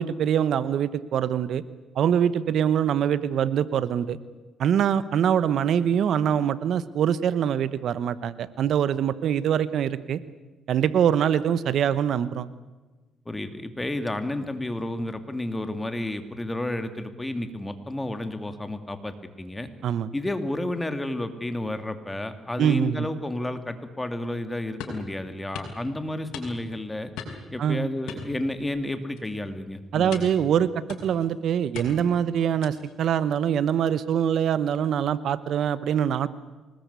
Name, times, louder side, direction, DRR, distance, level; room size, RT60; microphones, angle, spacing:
voice 1, 0.0-1.6 1.9-4.2 4.6-10.2 10.7-12.5 19.8-20.1 22.6-23.1 27.6-27.9 29.9-30.7 31.0-36.3, right 9 dB, 70° right, 16 dB, 1.0 m, -24 dB
voice 2, 13.3-19.7 20.1-27.1 27.5-30.3, left 1 dB, 15° left, 9 dB, 2.6 m, -31 dB
sound 1, 24.8-25.1 25.5-25.8 26.3-26.8 27.2-27.5 28.1-28.8 29.2-29.4 30.1-30.4 30.9-31.3 31.7-32.1 32.6-32.9, left 5 dB, 90° left, 5.3 m, -39 dB
25.0 x 20.0 x 8.3 m, 1.2 s
cardioid pair, 90°, 0 cm